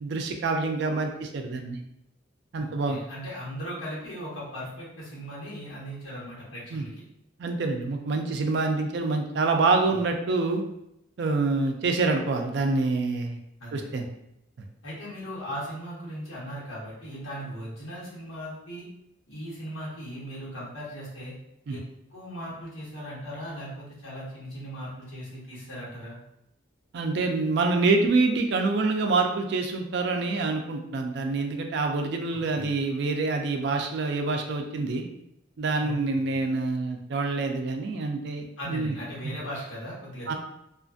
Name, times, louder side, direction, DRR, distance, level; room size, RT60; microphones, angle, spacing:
voice 1, 0.0-1.8 2.5-3.0 6.7-6.8 7.4-10.6 11.2-13.4 13.7-14.1 21.7-21.8 26.9-35.0 35.6-38.9 39.2-39.4 40.3-40.4, right 3 dB, 60° right, 4 dB, 0.4 m, -26 dB
voice 2, 2.6-7.0 13.6-13.9 14.8-18.9 19.3-21.3 21.7-21.8 22.1-26.2 32.5-32.7 35.8-35.9 36.3-36.4 38.6-40.3, equal, 90° left, -6 dB, 1.1 m, -38 dB
2.5 x 2.4 x 2.3 m, 0.80 s
head